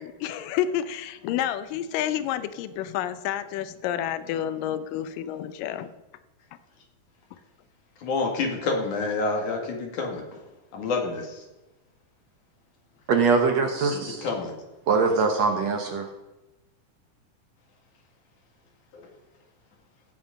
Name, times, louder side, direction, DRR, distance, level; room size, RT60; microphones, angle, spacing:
voice 1, 0.0-5.9, left 10 dB, 85° left, 12 dB, 2.3 m, -29 dB
voice 2, 8.0-10.5 10.7-11.5 13.9-14.5 18.9-19.1, left 3 dB, 65° left, 1 dB, 3.6 m, -28 dB
voice 3, 13.1-14.3 14.9-16.1, right 4 dB, 65° right, 4 dB, 2.0 m, -22 dB
16.0 x 7.9 x 5.2 m, 1.0 s
omnidirectional pair, 3.8 m